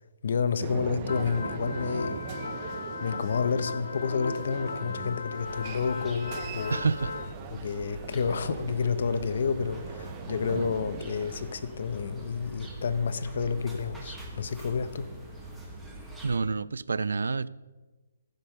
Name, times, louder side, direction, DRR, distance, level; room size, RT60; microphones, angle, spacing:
voice 1, 0.2-2.3 3.0-6.9 7.5-15.1, left 5 dB, 45° left, 0.7 m, -30 dB
sound 1, 0.6-11.9, right 8 dB, 20° right, 0.4 m, -41 dB
sound 2, 1.1-7.3, left 4 dB, 70° left, 0.4 m, -37 dB
sound 3, 5.4-16.4, right 1 dB, 5° right, 1.0 m, -44 dB
voice 2, 6.7-7.1 16.2-17.5, right 4 dB, 85° right, 0.4 m, -28 dB
15.0 x 5.3 x 6.4 m
hypercardioid pair, 175°, 0 cm